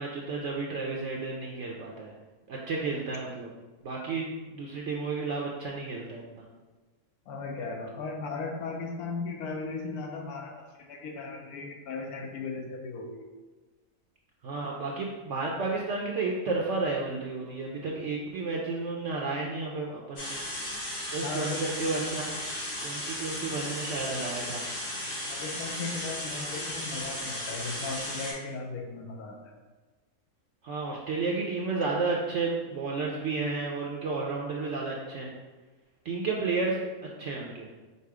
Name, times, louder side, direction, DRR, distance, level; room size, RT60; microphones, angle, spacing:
voice 1, 0.0-2.1 2.5-3.5 3.8-6.5 14.4-20.4 21.1-22.4 22.8-24.6 30.6-35.3 36.0-36.8 37.2-37.7, right 3 dB, 65° right, -2 dB, 0.8 m, -32 dB
voice 2, 7.3-13.2 21.2-21.6 23.4-23.5 25.3-29.5, left 4 dB, 80° left, 2 dB, 1.2 m, -37 dB
sound 1, 20.2-28.3, left 1 dB, 55° left, 1.6 m, -35 dB
5.4 x 2.0 x 4.7 m, 1.3 s
omnidirectional pair, 1.6 m